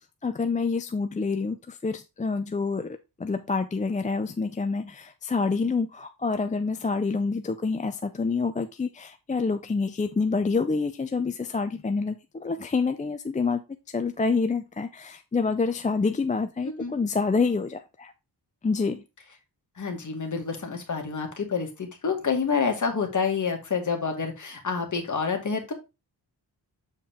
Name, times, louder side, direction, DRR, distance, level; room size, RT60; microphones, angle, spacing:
voice 1, 0.2-13.6 13.9-18.1 18.6-19.0, left 4 dB, 20° left, 0.4 m, -27 dB
voice 2, 16.6-17.0 19.8-25.7, left 5 dB, 45° left, 2.0 m, -28 dB
7.5 x 4.4 x 3.5 m
wide cardioid pair, 110°, 41 cm